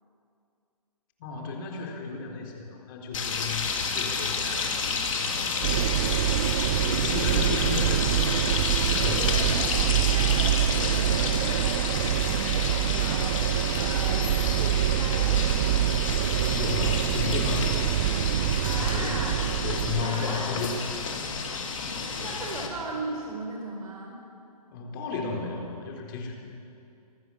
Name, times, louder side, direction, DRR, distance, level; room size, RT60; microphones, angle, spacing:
voice 1, 1.2-4.8 5.1-6.3 6.8-8.1 9.0-9.6 16.5-17.9 18.7-19.2 19.6-21.1 24.7-26.3, left 4 dB, 35° left, 2 dB, 4.1 m, -34 dB
sound 1, 3.1-22.7, left 5 dB, 55° left, 3.5 m, -30 dB
sound 2, 5.6-20.1, right 13 dB, 25° right, 0.4 m, -26 dB
voice 2, 8.9-9.8 10.1-16.0 18.6-19.5 20.0-20.5 21.9-24.2, right 2 dB, 65° right, -1 dB, 4.5 m, -38 dB
27.0 x 18.5 x 7.2 m, 2.6 s
figure-of-eight pair, 130°, 20 cm